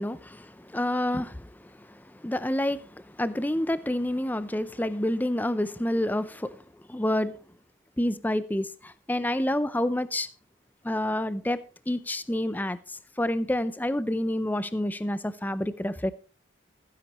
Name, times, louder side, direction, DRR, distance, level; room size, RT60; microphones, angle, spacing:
voice 1, 0.0-6.6 6.9-7.4 8.0-10.3 10.8-11.6 11.9-16.1, left 1 dB, 10° left, 0.5 m, -28 dB
15.0 x 9.9 x 3.0 m
head